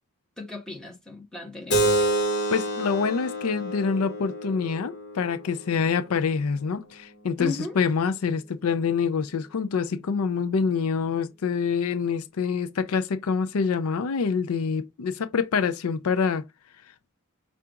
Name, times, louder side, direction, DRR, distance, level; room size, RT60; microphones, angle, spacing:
voice 1, 0.4-2.1 7.4-7.7, left 3 dB, 5° left, 1.4 m, -36 dB
Keyboard (musical), 1.7-6.8, right 1 dB, 50° left, 1.4 m, -28 dB
voice 2, 2.5-16.4, left 5 dB, 80° left, 0.5 m, -26 dB
5.6 x 2.5 x 3.7 m
head